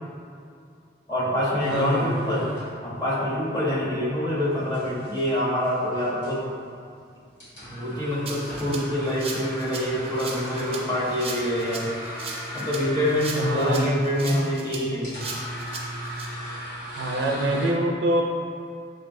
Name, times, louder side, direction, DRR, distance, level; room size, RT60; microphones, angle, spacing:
voice 1, 1.1-2.5 2.8-6.4 7.7-11.9 12.5-15.1, equal, 20° left, -7 dB, 0.8 m, -26 dB
sound 1, 1.6-17.7, equal, 75° left, 1.5 m, -38 dB
voice 2, 1.7-2.1 13.3-13.9 17.0-18.2, right 1 dB, 80° right, 1 dB, 0.5 m, -24 dB
Rattle (instrument), 8.3-16.3, right 4 dB, 30° right, 0.4 m, -38 dB
5.9 x 2.7 x 2.5 m, 2.4 s
head